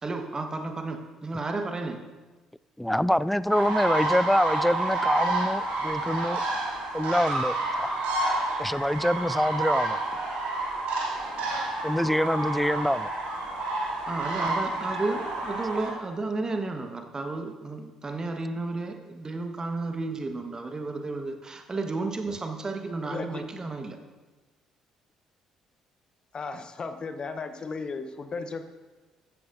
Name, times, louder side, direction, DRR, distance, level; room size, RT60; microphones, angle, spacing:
voice 1, 0.0-2.0 14.1-24.0, right 3 dB, 25° right, 5 dB, 1.4 m, -32 dB
voice 2, 2.8-6.4 6.9-7.9 8.6-10.0 11.8-13.1, equal, 5° left, 17 dB, 0.3 m, -25 dB
sound 1, 3.5-15.9, right 2 dB, 60° right, 2.9 m, -29 dB
voice 3, 23.0-23.4 26.3-28.6, left 4 dB, 35° left, 9 dB, 0.9 m, -35 dB
14.5 x 12.0 x 2.7 m, 1.2 s
figure-of-eight pair, 45°, 2 cm